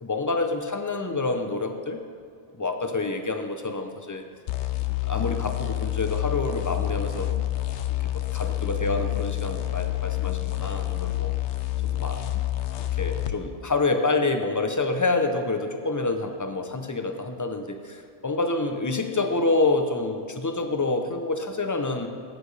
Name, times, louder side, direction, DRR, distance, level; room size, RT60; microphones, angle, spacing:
voice 1, 0.0-2.0 2.5-4.3 5.0-7.3 8.0-11.3 11.9-12.3 13.0-22.1, left 3 dB, 25° left, 6 dB, 0.4 m, -27 dB
sound 1, 4.5-13.4, left 15 dB, 75° left, 0.9 m, -28 dB
14.5 x 8.7 x 3.3 m, 2.3 s
omnidirectional pair, 1.2 m